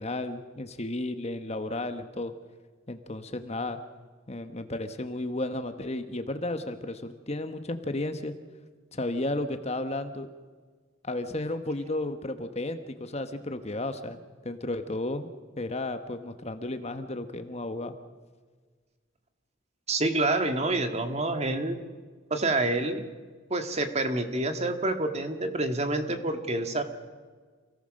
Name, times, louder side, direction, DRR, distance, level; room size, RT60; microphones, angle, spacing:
voice 1, 0.0-2.3 2.9-3.8 4.3-8.3 8.9-10.3 11.0-15.3 15.6-17.9, left 2 dB, 30° left, 9 dB, 1.2 m, -33 dB
voice 2, 19.9-21.8 22.3-23.1 23.5-26.8, right 2 dB, 35° right, 7 dB, 1.8 m, -27 dB
28.0 x 18.0 x 6.5 m, 1.5 s
head